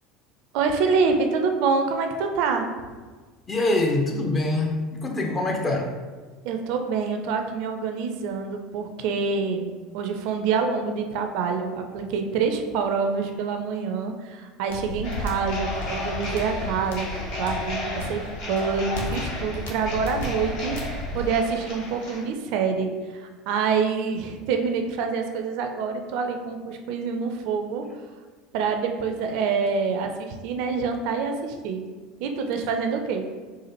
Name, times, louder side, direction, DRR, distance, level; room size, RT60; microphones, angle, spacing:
voice 1, 0.5-2.7 6.4-17.1 17.4-27.8 28.5-31.8 32.2-33.3, right 5 dB, 60° right, 5 dB, 0.4 m, -26 dB
voice 2, 3.5-5.9, left 2 dB, 25° left, 2 dB, 0.6 m, -24 dB
sound 1, 14.7-21.3, left 2 dB, 75° left, 0.6 m, -34 dB
sound 2, 15.0-22.2, left 2 dB, 60° left, 1.0 m, -34 dB
4.0 x 2.5 x 2.9 m, 1.4 s
figure-of-eight pair, 70°, 0 cm